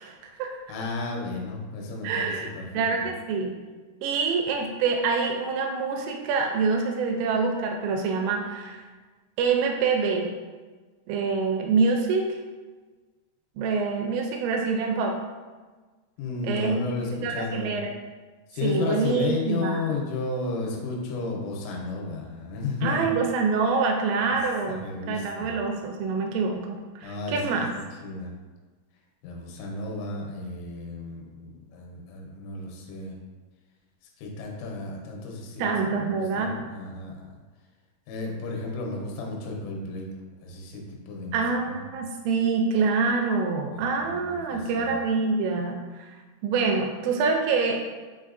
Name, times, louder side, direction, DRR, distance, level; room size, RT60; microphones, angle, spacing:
voice 1, 0.0-0.6 2.0-3.5 4.0-8.8 9.4-10.3 11.1-12.3 13.6-15.2 16.4-16.8 17.2-17.9 18.6-19.9 22.8-27.7 35.6-36.5 41.3-46.1 46.4-47.8, right 4 dB, 85° right, 2 dB, 2.9 m, -26 dB
voice 2, 0.7-3.1 16.2-17.8 18.5-23.1 24.2-24.4 24.7-25.6 27.0-27.7 28.0-28.3 29.2-33.2 34.2-37.4 38.1-40.1 40.4-41.8 43.7-45.0, left 3 dB, 80° left, 0 dB, 3.1 m, -33 dB
7.4 x 2.8 x 2.4 m, 1.3 s
omnidirectional pair, 5.9 m